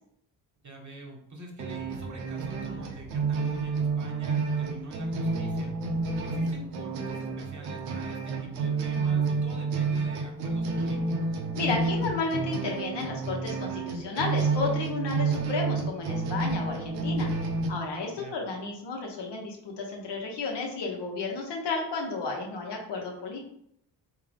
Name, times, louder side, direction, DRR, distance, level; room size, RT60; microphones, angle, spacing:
voice 1, 0.6-5.7 6.2-11.4 18.2-18.3, right 1 dB, 40° right, 0 dB, 1.3 m, -45 dB
sound 1, 1.6-17.7, right 4 dB, 90° right, 0.6 m, -30 dB
voice 2, 11.5-17.3 17.7-23.4, left 3 dB, 65° left, 0 dB, 1.2 m, -32 dB
3.5 x 2.8 x 3.4 m, 0.72 s
supercardioid pair, 50°, 45 cm